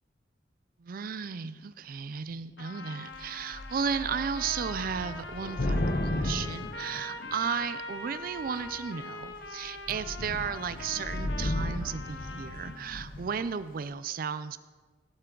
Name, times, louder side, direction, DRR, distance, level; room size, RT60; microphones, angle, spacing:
voice 1, 0.8-14.6, right 6 dB, 55° right, 14 dB, 0.4 m, -34 dB
Trumpet, 2.6-13.0, left 2 dB, 85° left, 0.9 m, -43 dB
Thunder / Rain, 3.1-3.3 3.5-7.6 8.4-8.8 9.2-9.4 9.7-13.4, left 1 dB, 50° left, 0.8 m, -34 dB
16.0 x 7.9 x 3.8 m, 1.4 s
head